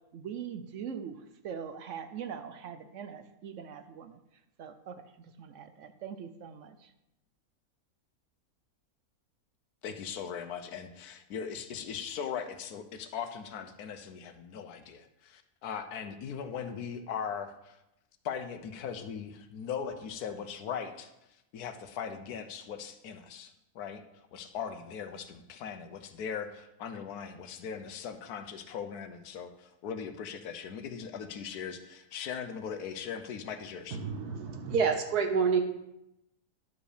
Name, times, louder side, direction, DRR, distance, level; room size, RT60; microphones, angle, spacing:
voice 1, 0.1-4.2 4.6-6.9, right 7 dB, 65° right, 10 dB, 0.9 m, -42 dB
voice 2, 9.8-17.8 18.2-34.0, left 7 dB, 80° left, 9 dB, 1.3 m, -39 dB
voice 3, 34.0-35.6, right 6 dB, 85° right, 5 dB, 1.6 m, -28 dB
11.0 x 5.2 x 4.9 m, 0.88 s
omnidirectional pair, 1.6 m